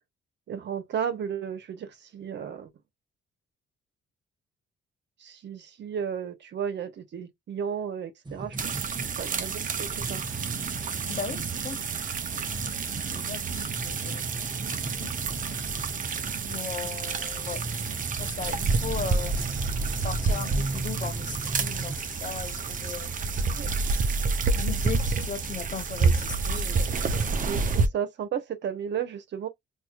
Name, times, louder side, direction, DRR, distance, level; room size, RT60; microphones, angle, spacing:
voice 1, 0.5-2.7 5.2-10.2 23.6-23.7 26.8-26.9 27.4-29.5, right 8 dB, 65° right, 1.2 m, -34 dB
sound 1, 8.3-22.0, right 2 dB, 20° right, 1.1 m, -39 dB
sound 2, 8.6-27.9, right 4 dB, 40° right, 0.7 m, -29 dB
voice 2, 11.1-11.8 13.0-14.3 14.7-15.1 16.4-17.6 18.2-19.3 20.0-23.1 24.5-26.9, left 6 dB, 40° left, 0.8 m, -37 dB
4.3 x 2.7 x 2.4 m
cardioid pair, 90°, 20 cm